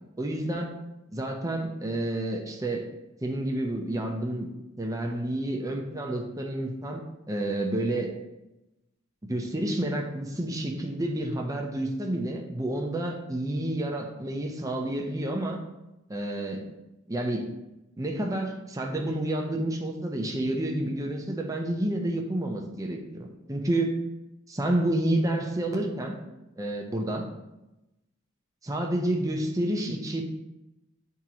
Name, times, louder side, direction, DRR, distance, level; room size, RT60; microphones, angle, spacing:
voice 1, 0.2-0.7 1.1-2.9 3.2-4.5 4.8-7.0 7.3-8.2 9.3-15.6 16.1-16.7 17.1-17.5 18.0-24.0 24.5-26.2 26.6-27.3 28.6-30.2, right 1 dB, 15° right, 1 dB, 0.7 m, -29 dB
8.8 x 3.6 x 3.0 m, 0.96 s
head